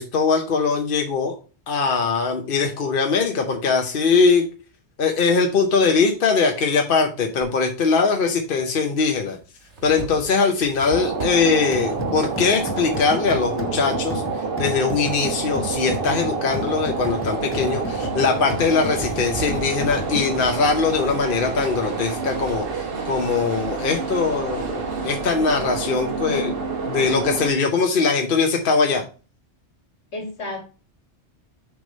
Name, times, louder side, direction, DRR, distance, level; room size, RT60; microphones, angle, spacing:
voice 1, 0.0-1.4 1.7-4.5 5.0-9.4 9.8-14.2 14.6-26.5 26.9-29.0, left 4 dB, 55° left, 4 dB, 1.0 m, -21 dB
sound 1, 7.4-7.5 8.6-8.7 9.2-14.3 14.8-16.0 16.4-22.6, right 4 dB, 75° right, 1.8 m, -39 dB
sound 2, 10.9-27.5, right 5 dB, 55° right, 1.2 m, -28 dB
sound 3, 11.7-20.6, left 2 dB, 15° left, 0.6 m, -34 dB
voice 2, 26.2-26.5 30.1-30.6, left 2 dB, 75° left, 3 dB, 1.9 m, -30 dB
6.3 x 3.5 x 5.2 m, 0.35 s
omnidirectional pair, 1.2 m